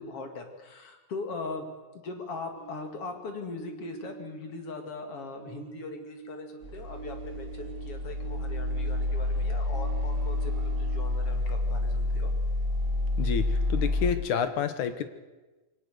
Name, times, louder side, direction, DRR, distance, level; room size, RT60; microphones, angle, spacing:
voice 1, 0.0-1.7 2.0-12.3, left 3 dB, 50° left, 5 dB, 3.0 m, -40 dB
sound 1, 2.5-5.1 5.3-9.3 9.6-11.3, right 7 dB, 40° right, 2.6 m, -46 dB
sound 2, 6.6-14.1, left 2 dB, 25° right, 2.8 m, -29 dB
voice 2, 13.2-15.0, left 7 dB, 70° left, 10 dB, 2.6 m, -29 dB
24.0 x 17.5 x 6.8 m, 1.2 s
omnidirectional pair, 3.8 m